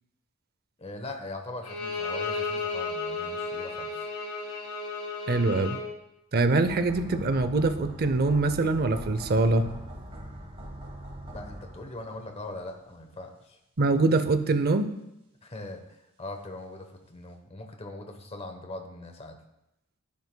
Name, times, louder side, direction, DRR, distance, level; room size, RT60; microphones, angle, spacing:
voice 1, 0.8-4.1 11.3-13.6 15.4-15.8 16.2-19.4, left 2 dB, 25° left, 5 dB, 1.0 m, -41 dB
Bowed string instrument, 1.6-5.9, left 4 dB, 90° left, 1.8 m, -33 dB
voice 2, 5.3-5.8 6.3-9.7 13.8-14.9, right 3 dB, 45° right, 11 dB, 0.6 m, -24 dB
sound 1, 6.6-12.7 13.0-13.1, right 1 dB, 25° right, 1.2 m, -42 dB
11.0 x 9.3 x 2.2 m, 0.88 s
head